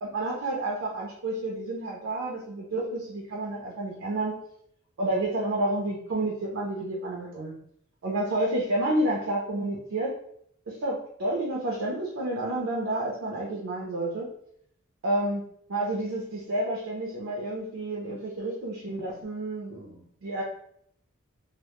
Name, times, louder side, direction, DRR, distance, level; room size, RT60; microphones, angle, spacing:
voice 1, 0.0-4.3 5.0-7.5 8.0-10.1 10.7-14.3 15.0-15.4 15.7-20.4, right 1 dB, 60° right, -2 dB, 0.4 m, -30 dB
2.1 x 2.0 x 2.8 m, 0.69 s
head